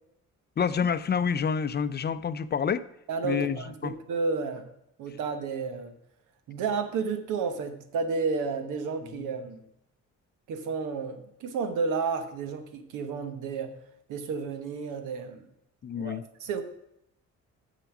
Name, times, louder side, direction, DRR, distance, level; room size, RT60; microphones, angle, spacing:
voice 1, 0.6-2.9 3.2-3.9 9.1-9.3 15.8-16.2, left 7 dB, 35° left, 14 dB, 0.5 m, -28 dB
voice 2, 3.1-4.7 5.0-5.9 6.5-9.6 10.5-13.7 14.1-15.4 16.0-16.6, right 5 dB, 90° right, 8 dB, 1.2 m, -31 dB
7.3 x 6.8 x 6.0 m, 0.80 s
cardioid pair, 90°, 30 cm